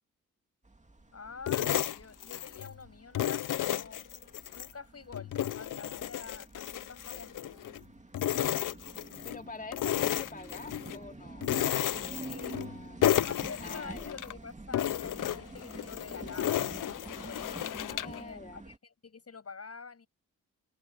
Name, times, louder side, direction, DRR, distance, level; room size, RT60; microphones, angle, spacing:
sound 1, 0.6-18.8, right 2 dB, 20° right, 2.6 m, -48 dB
voice 1, 1.1-4.0 4.5-7.5 12.3-12.6 13.3-18.7 19.0-20.1, left 5 dB, 45° left, 6.6 m, -47 dB
sound 2, 1.5-2.7 3.1-4.7 5.1-7.8 8.1-9.4 9.7-11.0 11.4-12.7 13.0-14.3 14.7-18.2, left 11 dB, 65° left, 0.7 m, -32 dB
voice 2, 9.2-13.1 13.6-14.1 17.8-18.6, left 3 dB, 25° left, 2.6 m, -46 dB
open air
cardioid pair, 60°, 35 cm